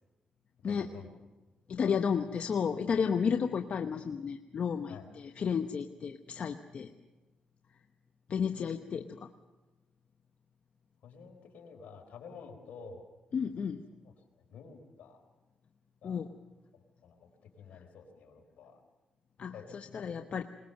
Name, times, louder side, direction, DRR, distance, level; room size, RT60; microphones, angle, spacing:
voice 1, 0.6-1.1 1.9-2.0 4.9-5.1 11.0-13.0 14.0-14.1 14.5-15.2 16.0-16.2 16.7-17.3 17.6-18.8 19.5-19.7, left 5 dB, 80° left, 3 dB, 4.0 m, -50 dB
voice 2, 1.7-6.9 8.3-9.3 13.3-13.8 16.0-16.3 19.4-20.4, left 6 dB, 60° left, 6 dB, 1.0 m, -32 dB
22.0 x 20.5 x 6.7 m, 1.1 s
cardioid pair, 70°, 3 cm